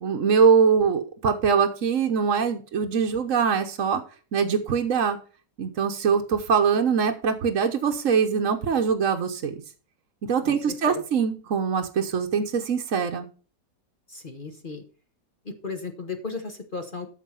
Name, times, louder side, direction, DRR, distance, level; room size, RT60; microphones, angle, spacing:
voice 1, 0.0-4.0 4.3-5.2 5.6-9.5 10.2-13.3, right 6 dB, 55° right, 3 dB, 1.2 m, -23 dB
voice 2, 10.5-11.0 14.1-14.8 15.4-17.1, left 4 dB, 35° left, 5 dB, 1.0 m, -35 dB
13.0 x 4.7 x 5.6 m, 0.37 s
omnidirectional pair, 1.8 m